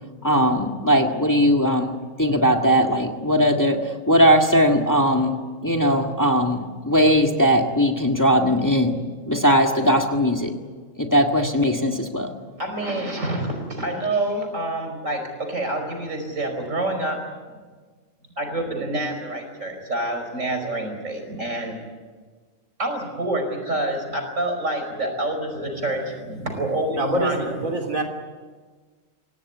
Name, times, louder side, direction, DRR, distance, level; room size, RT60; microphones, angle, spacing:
voice 1, 0.2-1.9 2.2-5.4 5.6-9.0 9.3-10.5 11.0-12.3, equal, 15° left, 3 dB, 1.8 m, -19 dB
voice 2, 12.6-17.2 18.4-21.8 22.8-27.5, right 1 dB, 70° right, 4 dB, 5.6 m, -27 dB
voice 3, 26.9-28.0, right 1 dB, 90° right, 4 dB, 3.9 m, -25 dB
26.0 x 18.0 x 9.7 m, 1.4 s
omnidirectional pair, 1.4 m